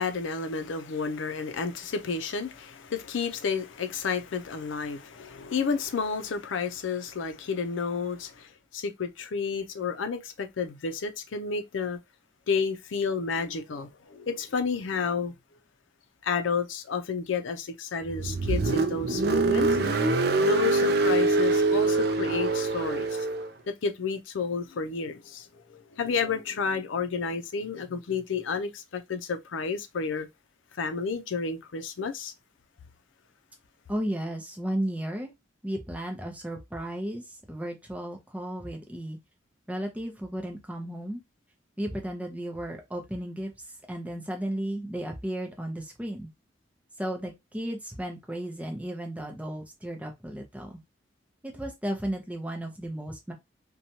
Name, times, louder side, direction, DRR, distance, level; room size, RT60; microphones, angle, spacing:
voice 1, 0.0-12.0 12.5-15.3 16.2-19.8 20.4-23.3 23.7-30.3 30.8-32.3, left 5 dB, 90° left, 0.5 m, -31 dB
Car, 18.0-23.5, right 3 dB, 55° right, 0.4 m, -24 dB
voice 2, 33.9-35.3 35.6-39.2 39.7-41.2 41.8-43.5 43.9-46.3 47.0-50.7 51.4-53.3, right 1 dB, 10° right, 0.6 m, -34 dB
2.8 x 2.2 x 2.6 m
head